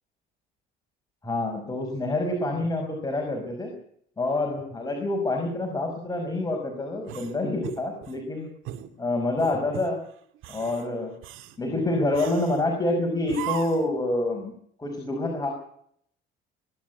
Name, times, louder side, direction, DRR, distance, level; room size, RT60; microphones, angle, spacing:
voice 1, 1.2-3.7 4.2-8.5 9.0-10.0 10.5-11.1 11.6-14.5 14.8-15.5, left 2 dB, 20° left, 2 dB, 5.5 m, -27 dB
sound 1, 7.0-8.2 8.6-8.9 9.4-9.9 10.3-10.8 11.2-11.6 12.1-12.6 13.3-13.9, right 11 dB, 75° right, 2.2 m, -37 dB
22.5 x 13.0 x 9.4 m, 0.67 s
cardioid pair, 105°, 21 cm